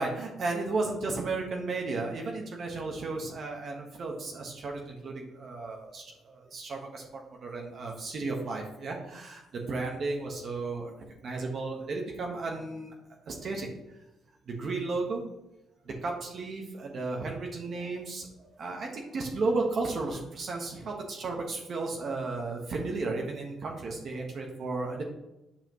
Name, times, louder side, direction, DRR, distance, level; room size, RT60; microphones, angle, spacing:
voice 1, 0.0-10.9 11.2-12.9 13.2-13.7 14.5-15.2 15.8-25.0, right 3 dB, 55° right, 0 dB, 1.3 m, -34 dB
8.6 x 5.1 x 3.1 m, 0.92 s
cardioid pair, 90°, 0 cm